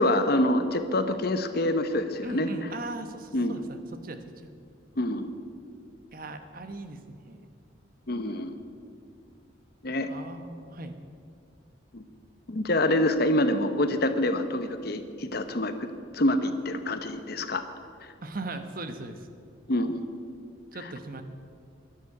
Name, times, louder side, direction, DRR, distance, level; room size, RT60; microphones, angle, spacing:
voice 1, 0.0-2.5 3.3-3.5 5.0-5.3 8.1-8.5 9.8-10.1 11.9-12.0 12.5-15.7 16.1-17.6 19.7-20.1, left 1 dB, 50° left, 9 dB, 0.9 m, -26 dB
voice 2, 2.2-4.5 6.1-7.5 10.0-10.9 18.2-19.3 20.7-21.2, right 2 dB, 45° right, 8 dB, 1.0 m, -39 dB
11.5 x 11.0 x 8.4 m, 2.3 s
head